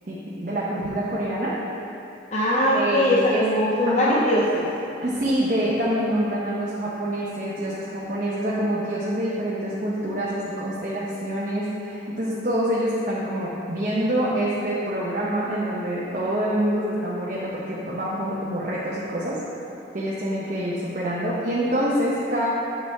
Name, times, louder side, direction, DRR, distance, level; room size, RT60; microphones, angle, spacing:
voice 1, 0.1-1.6 2.7-3.4 3.9-4.2 5.0-19.4 19.9-22.5, right 1 dB, 45° right, -7 dB, 0.7 m, -26 dB
voice 2, 2.3-4.7, left 1 dB, 35° left, -5 dB, 0.5 m, -21 dB
8.5 x 4.9 x 3.4 m, 2.9 s
head